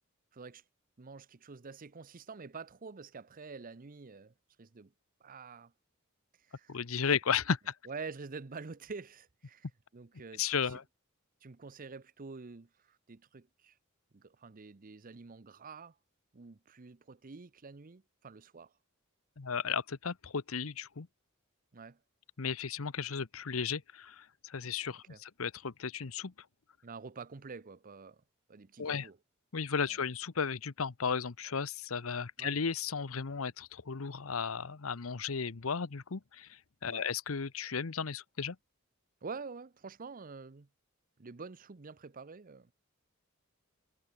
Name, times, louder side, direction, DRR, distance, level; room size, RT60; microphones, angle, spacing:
voice 1, 0.3-0.6 1.0-4.9 5.2-5.7 6.5-6.8 7.9-9.7 9.9-10.8 11.4-13.7 14.1-15.9 16.3-18.7 21.7-22.0 25.1-25.2 26.8-28.2 28.5-29.2 32.4-32.6 36.8-37.1 39.2-40.7 41.2-42.7, right 4 dB, 40° right, 0.7 m, -47 dB
voice 2, 6.7-7.7 10.4-10.8 19.4-21.1 22.4-26.3 28.8-29.1 29.5-38.6, left 6 dB, 85° left, 0.9 m, -34 dB
head